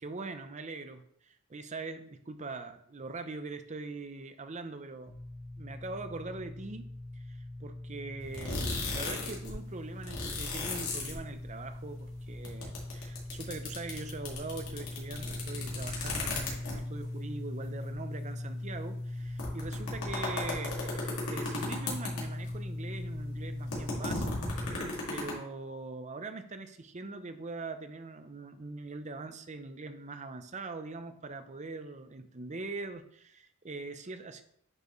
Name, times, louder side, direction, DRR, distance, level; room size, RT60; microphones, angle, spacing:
voice 1, 0.0-5.1 5.6-34.4, right 3 dB, 35° right, 9 dB, 0.6 m, -42 dB
sound 1, 5.1-24.7, left 1 dB, 40° left, 1.1 m, -40 dB
sound 2, 8.2-9.5 9.8-11.7 12.0-17.0 17.6-17.7 17.9-18.0 18.7-18.8 19.2-22.6 22.9-25.3, left 3 dB, 85° left, 2.3 m, -36 dB
9.8 x 4.7 x 3.1 m, 0.67 s
head